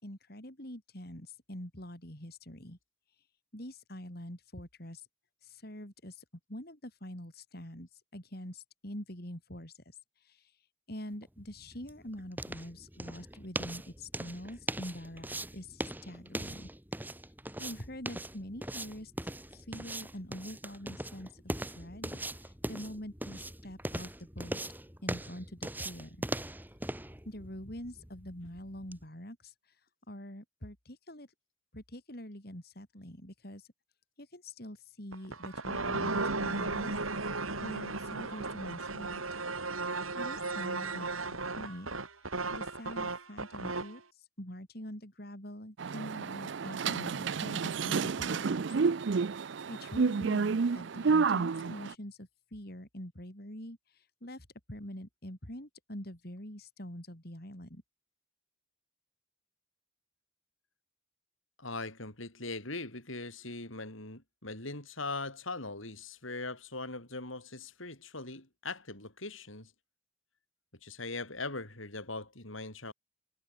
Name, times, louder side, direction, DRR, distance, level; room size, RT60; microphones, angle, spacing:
voice 1, 0.0-2.8 3.5-5.1 5.4-16.7 17.6-24.6 25.0-26.2 27.2-29.8 30.1-31.3 31.7-33.7 34.2-37.0 37.3-39.2 40.1-41.9 42.2-48.7 49.4-57.8, left 1 dB, 50° left, 4.8 m, -45 dB
sound 1, 11.2-29.0, right 1 dB, 10° right, 6.2 m, -41 dB
sound 2, 35.1-44.0, right 3 dB, 90° right, 5.6 m, -35 dB
sound 3, 45.8-51.9, right 5 dB, 60° right, 0.5 m, -30 dB
voice 2, 61.6-69.7 70.8-72.9, left 3 dB, 75° left, 6.6 m, -40 dB
head